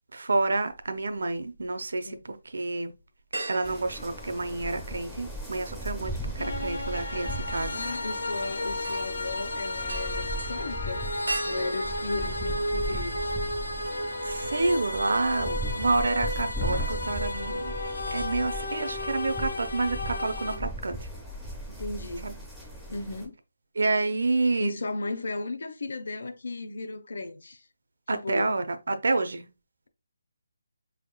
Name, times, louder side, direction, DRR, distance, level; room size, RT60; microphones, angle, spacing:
voice 1, 0.1-2.9 3.5-7.8 14.2-17.7 18.1-21.1 22.2-22.3 23.8-24.7 28.1-29.5, right 3 dB, 65° right, 0.5 m, -29 dB
sound 1, 0.7-1.7 2.1-2.2 3.3-5.0 5.3-13.2 13.6-13.7 15.2-15.8 16.1-16.3 16.5-17.1 17.4-17.5, right 2 dB, 85° right, 1.5 m, -40 dB
sound 2, 3.6-23.3, equal, ahead, 0.4 m, -37 dB
sound 3, 6.4-20.6, left 1 dB, 80° left, 1.2 m, -33 dB
voice 2, 7.7-11.0 11.5-13.4 21.7-22.5 22.9-23.3 24.6-27.7 28.1-28.5, left 3 dB, 55° left, 0.5 m, -35 dB
4.6 x 3.4 x 2.2 m
hypercardioid pair, 180°, 0 cm